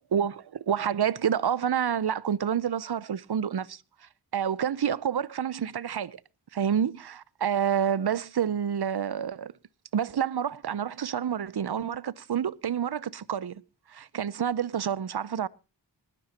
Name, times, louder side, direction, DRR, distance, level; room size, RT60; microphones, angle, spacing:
voice 1, 0.1-3.8 4.3-6.2 6.5-9.5 9.9-13.6 13.9-15.5, right 8 dB, 65° right, 0.7 m, -28 dB
20.0 x 15.0 x 2.9 m
wide cardioid pair, 70°, 42 cm